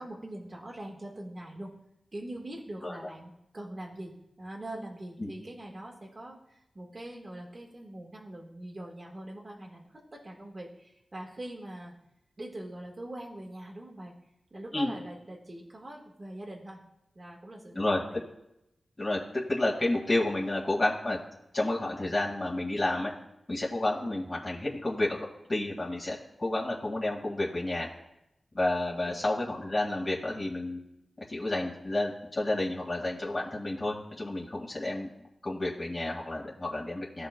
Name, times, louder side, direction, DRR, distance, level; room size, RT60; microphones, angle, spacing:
voice 1, 0.0-1.7 2.1-11.9 12.4-14.1 14.5-16.8 17.1-18.2 24.0-24.1 29.0-29.2, right 1 dB, 40° right, -1 dB, 1.6 m, -43 dB
voice 2, 19.5-21.2 21.5-23.1 23.5-25.2 25.5-27.9 28.5-30.8 31.3-35.1 35.4-37.3, left 2 dB, 40° left, -4 dB, 2.0 m, -30 dB
14.5 x 5.1 x 2.3 m, 0.85 s
cardioid pair, 45°, 0 cm